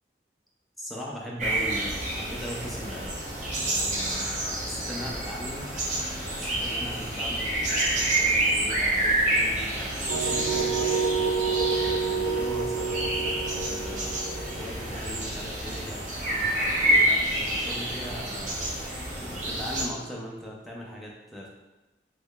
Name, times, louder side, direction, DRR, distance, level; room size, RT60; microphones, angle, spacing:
voice 1, 0.8-3.1 3.6-4.3 4.6-5.7 6.3-10.8 11.7-14.1 14.6-18.8 19.3-21.5, equal, ahead, -4 dB, 0.5 m, -39 dB
sound 1, 1.4-19.9, right 1 dB, 45° right, 0.7 m, -28 dB
sound 2, 10.1-15.9, right 5 dB, 75° right, 0.4 m, -29 dB
3.6 x 3.2 x 2.3 m, 1.1 s
head